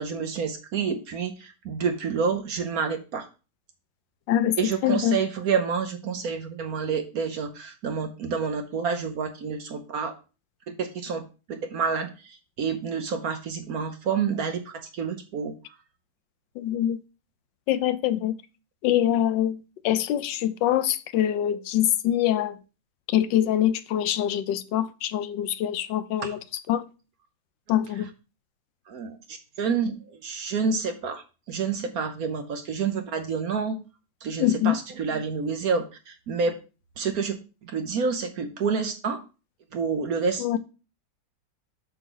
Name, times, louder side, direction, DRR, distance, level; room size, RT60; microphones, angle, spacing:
voice 1, 0.0-3.3 4.6-10.1 10.7-11.2 11.5-15.5 26.2-26.4 28.9-31.2 31.5-33.8 34.2-36.6 37.0-37.4 37.6-39.2 39.7-40.6, right 5 dB, 60° right, 1.1 m, -28 dB
voice 2, 4.3-5.2 16.6-17.0 17.7-18.4 18.8-19.6 19.8-22.6 23.1-26.4 26.7-26.9 27.7-28.1 34.4-34.8 40.4-40.6, left 11 dB, 75° left, 1.2 m, -24 dB
7.9 x 6.1 x 3.8 m
omnidirectional pair, 2.1 m